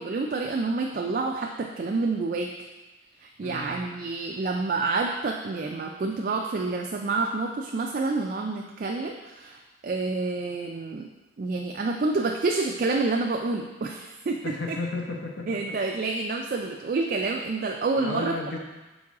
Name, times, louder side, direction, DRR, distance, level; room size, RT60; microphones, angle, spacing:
voice 1, 0.0-2.5 3.2-11.1 11.4-14.4 14.7-14.8 15.5-18.4, right 3 dB, 45° right, 2 dB, 0.3 m, -28 dB
voice 2, 3.4-3.8 14.4-15.6 18.0-18.6, left 3 dB, 70° left, 1 dB, 0.9 m, -33 dB
6.1 x 4.6 x 3.6 m, 1.2 s
head